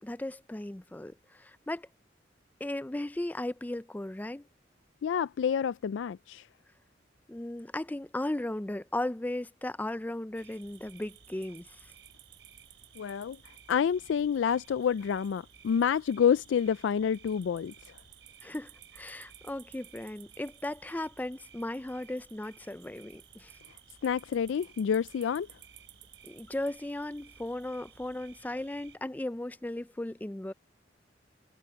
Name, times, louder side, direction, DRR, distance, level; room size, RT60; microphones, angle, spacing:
voice 1, 0.0-1.9 2.6-4.5 7.3-11.7 18.4-23.5 26.2-30.5, left 1 dB, 10° left, 0.4 m, -36 dB
voice 2, 5.0-6.5 13.0-13.4 13.7-18.0 24.0-25.5, left 7 dB, 90° left, 0.3 m, -28 dB
sound 1, 10.3-29.0, right 8 dB, 80° right, 3.5 m, -56 dB
head